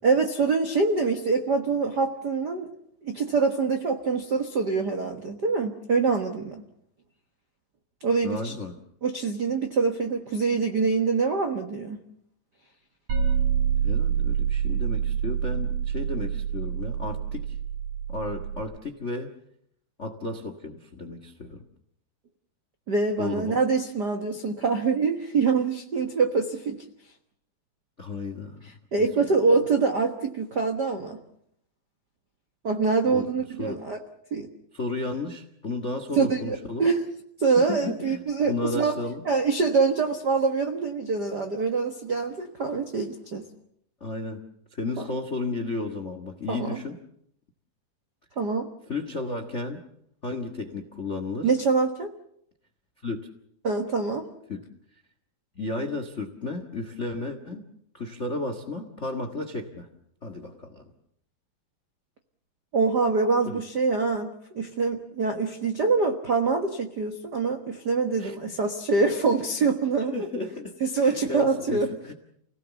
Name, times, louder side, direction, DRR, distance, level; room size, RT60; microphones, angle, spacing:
voice 1, 0.0-2.7 3.0-6.6 8.0-8.5 9.0-12.0 22.9-26.8 28.9-31.2 32.6-34.0 34.3-34.5 36.2-37.0 37.4-39.0 39.3-43.4 45.0-45.1 46.5-46.8 48.4-48.7 51.4-52.1 53.6-54.3 62.7-70.1 70.8-71.9, right 4 dB, 65° right, 5 dB, 1.0 m, -25 dB
voice 2, 8.2-8.8 13.8-17.6 18.1-19.3 20.0-21.6 23.2-23.6 28.0-28.7 29.0-29.1 33.1-33.3 33.6-33.8 34.7-36.8 37.6-38.2 38.5-39.2 44.0-44.4 44.7-47.0 48.9-49.8 50.2-51.5 53.0-53.2 54.5-54.7 55.5-57.7 57.9-59.9 60.2-60.8 63.4-63.6 68.2-68.4 70.1-70.7 71.0-72.1, left 2 dB, 55° left, 8 dB, 0.7 m, -33 dB
sound 1, 13.1-18.6, right 8 dB, 50° right, 7.3 m, -27 dB
29.5 x 18.0 x 7.1 m, 0.72 s
omnidirectional pair, 4.2 m